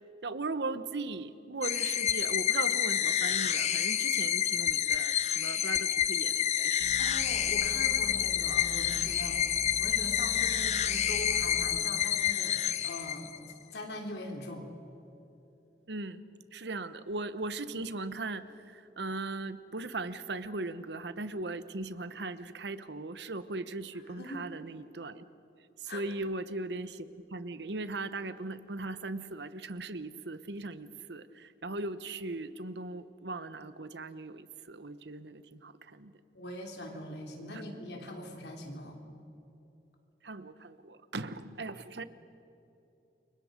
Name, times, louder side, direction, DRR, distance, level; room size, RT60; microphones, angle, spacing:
voice 1, 0.2-7.0 15.9-16.2 16.5-25.3 25.8-36.1 37.5-37.6 40.2-42.0, right 3 dB, 80° right, 13 dB, 1.0 m, -38 dB
sound 1, 1.6-13.5, left 10 dB, 40° left, 0.7 m, -29 dB
sound 2, 6.8-11.8, right 1 dB, 30° right, 0.6 m, -45 dB
voice 2, 7.0-9.4 9.8-12.6 12.8-13.3 13.7-14.7 24.1-24.5 25.9-26.0 36.3-39.0 41.9-42.0, left 1 dB, 75° left, 2 dB, 3.7 m, -41 dB
29.0 x 24.0 x 5.2 m, 3.0 s
head